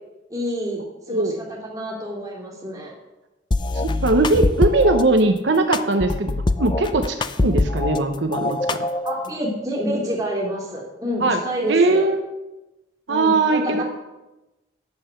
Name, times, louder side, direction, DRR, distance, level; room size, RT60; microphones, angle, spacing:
voice 1, 0.3-2.9 7.4-7.5 9.0-12.1 13.1-13.8, equal, 20° right, -2 dB, 2.6 m, -28 dB
sound 1, 3.5-5.0 5.7-8.0 8.3-9.3, left 2 dB, 25° left, 0.4 m, -23 dB
voice 2, 3.7-6.3 6.6-8.9 11.2-11.4 11.7-12.2 13.1-13.8, right 2 dB, 70° right, 6 dB, 0.9 m, -20 dB
12.0 x 5.7 x 8.2 m, 1.0 s
head